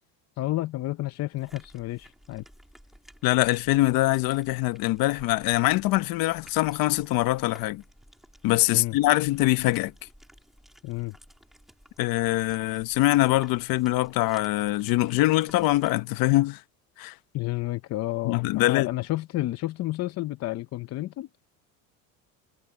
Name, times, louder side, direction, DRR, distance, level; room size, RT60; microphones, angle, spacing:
voice 1, 0.4-2.4 8.7-9.0 10.8-11.2 17.3-21.3, left 17 dB, 40° left, 0.7 m, -30 dB
sound 1, 1.3-15.9, equal, ahead, 3.4 m, -54 dB
voice 2, 3.2-7.8 8.4-9.9 12.0-16.6 17.0-17.1 18.2-18.9, left 18 dB, 60° left, 1.2 m, -23 dB
cardioid pair, 140°, 39 cm